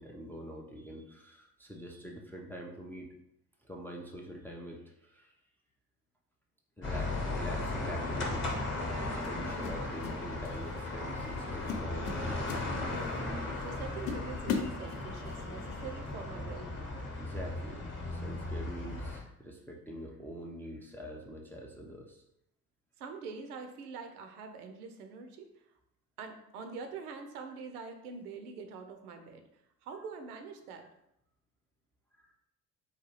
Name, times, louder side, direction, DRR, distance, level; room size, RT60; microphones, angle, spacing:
voice 1, 0.0-3.1 3.6-5.3 6.8-8.6 9.1-12.4 17.2-22.2 32.1-32.3, equal, 5° left, -1 dB, 0.3 m, -45 dB
sound 1, 6.8-19.2, left 2 dB, 25° left, 0.9 m, -36 dB
sound 2, 7.9-8.1 9.2-10.2 10.4-10.7 11.2-11.4 11.7-13.2 13.6-13.7 14.1-15.4, left 6 dB, 80° left, 0.5 m, -37 dB
sound 3, 8.7-15.2, left 3 dB, 55° left, 0.8 m, -53 dB
voice 2, 13.6-17.1 23.0-25.5 26.2-29.4 29.8-30.9, right 5 dB, 75° right, 6 dB, 0.6 m, -44 dB
4.0 x 2.3 x 3.0 m, 0.80 s
figure-of-eight pair, 55°, 46 cm